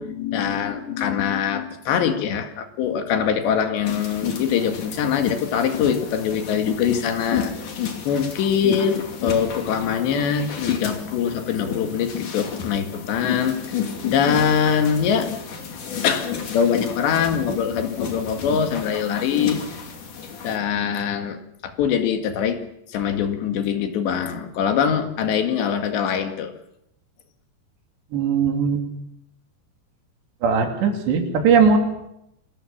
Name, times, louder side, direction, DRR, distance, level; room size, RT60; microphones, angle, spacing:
voice 1, 0.0-7.5 8.1-13.6 14.1-15.3 16.0-19.6 20.4-22.6 22.9-26.5, left 7 dB, 80° left, 7 dB, 4.2 m, -23 dB
sound 1, 3.8-20.6, left 7 dB, 50° left, 3.9 m, -31 dB
voice 2, 28.1-28.8 30.4-31.8, right 5 dB, 75° right, 5 dB, 5.0 m, -19 dB
27.5 x 20.5 x 7.3 m, 0.80 s
omnidirectional pair, 5.0 m